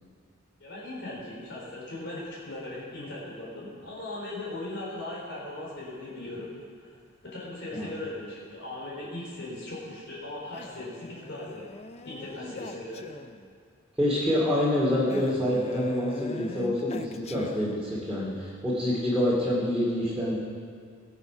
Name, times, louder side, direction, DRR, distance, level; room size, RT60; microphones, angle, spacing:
voice 1, 0.6-6.5 6.8-6.9 7.2-11.7 12.0-13.1, left 2 dB, 60° left, -6 dB, 3.9 m, -38 dB
Male speech man speaking, 10.5-13.5 15.1-18.1, left 2 dB, 30° left, 0.6 m, -41 dB
voice 2, 14.0-20.3, left 1 dB, 5° right, -9 dB, 2.4 m, -26 dB
20.5 x 7.1 x 5.8 m, 2.1 s
head